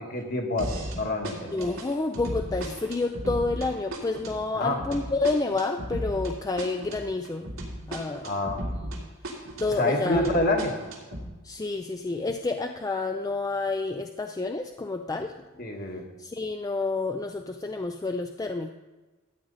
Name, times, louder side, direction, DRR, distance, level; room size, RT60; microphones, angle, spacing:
voice 1, 0.0-1.5 4.5-4.8 8.2-8.6 9.8-10.8 15.6-16.0, left 2 dB, 50° left, 2 dB, 1.5 m, -27 dB
sound 1, 0.6-1.0 1.2-9.0 9.2-11.2, right 1 dB, 90° right, 2.4 m, -35 dB
voice 2, 1.5-7.5 7.9-8.3 9.2-10.4 11.4-15.3 16.2-18.7, left 3 dB, 20° left, 5 dB, 0.4 m, -29 dB
13.5 x 8.8 x 4.0 m, 1.2 s
head